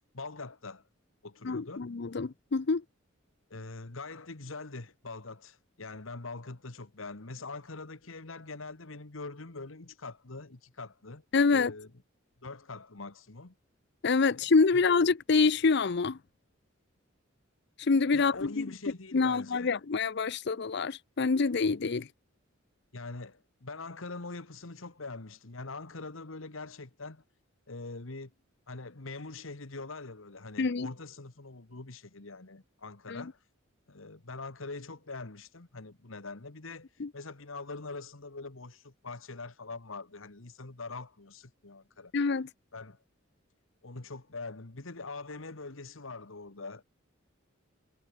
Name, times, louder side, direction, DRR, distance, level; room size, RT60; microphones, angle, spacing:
voice 1, 0.1-0.8 1.2-1.9 3.5-11.2 11.5-11.9 12.4-13.5 14.3-14.4 14.7-14.8 18.1-19.8 22.9-27.2 27.7-28.3 28.7-33.4 33.9-36.9 37.1-42.1 42.7-43.0 43.8-46.8, left 3 dB, 85° left, 1.6 m, -43 dB
voice 2, 1.4-2.8 11.3-11.7 14.0-16.2 17.8-18.6 19.1-22.1 30.6-30.9 33.1-33.2 37.0-37.1 42.1-42.5, left 4 dB, 55° left, 0.6 m, -26 dB
head